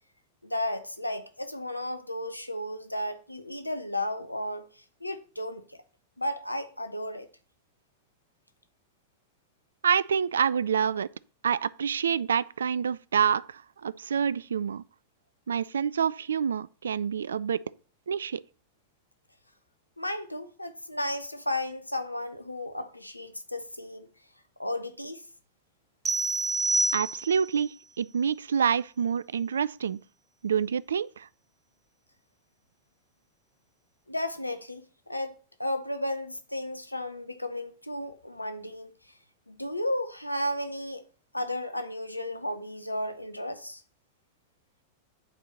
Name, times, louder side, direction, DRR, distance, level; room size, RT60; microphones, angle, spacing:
voice 1, 0.4-5.8 6.2-7.3 20.0-24.1 24.6-25.2 34.1-35.3 35.6-38.9 39.5-41.0 41.3-43.8, left 1 dB, 85° left, 0.8 m, -34 dB
voice 2, 9.8-11.1 11.4-14.8 15.5-17.7 18.1-18.4 26.9-30.0 30.4-31.3, right 7 dB, 70° right, 0.3 m, -27 dB
sound 1, 26.1-27.6, right 2 dB, 15° right, 0.8 m, -27 dB
8.4 x 4.5 x 6.5 m
figure-of-eight pair, 90°, 0 cm